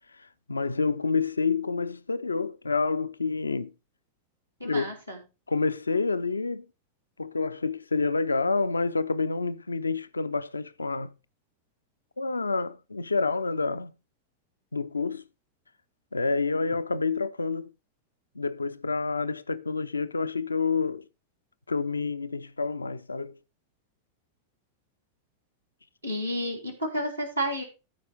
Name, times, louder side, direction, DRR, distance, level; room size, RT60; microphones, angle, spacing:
voice 1, 0.2-3.7 4.6-4.9 5.5-6.7 7.2-11.1 12.2-13.9 14.7-15.2 16.1-17.7 18.4-21.0 21.7-23.4, left 4 dB, 80° left, 0.5 m, -28 dB
voice 2, 4.6-5.2 26.0-27.6, equal, 85° right, 3.5 m, -31 dB
13.5 x 4.9 x 4.8 m
figure-of-eight pair, 90°, 0 cm